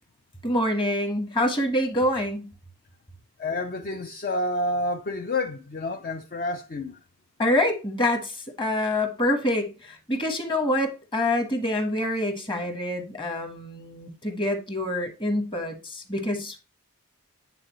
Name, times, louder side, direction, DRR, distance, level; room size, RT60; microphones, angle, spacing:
voice 1, 0.4-2.5 7.4-16.6, left 1 dB, 20° left, 1.2 m, -26 dB
voice 2, 3.4-7.0, left 1 dB, 40° left, 0.4 m, -29 dB
8.9 x 3.9 x 3.1 m
head